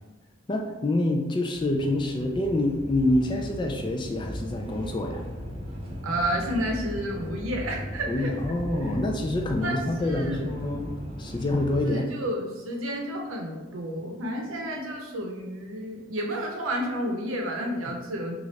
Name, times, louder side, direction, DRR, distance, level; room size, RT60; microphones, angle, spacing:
voice 1, 0.5-5.2 8.1-10.9 11.2-12.1, left 1 dB, 25° left, 2 dB, 0.3 m, -26 dB
sound 1, 1.5-11.8, equal, 30° right, 0.7 m, -37 dB
voice 2, 6.0-8.3 9.6-10.5 11.8-18.4, right 1 dB, 90° right, 1 dB, 0.7 m, -31 dB
3.9 x 2.4 x 3.2 m, 1.2 s
head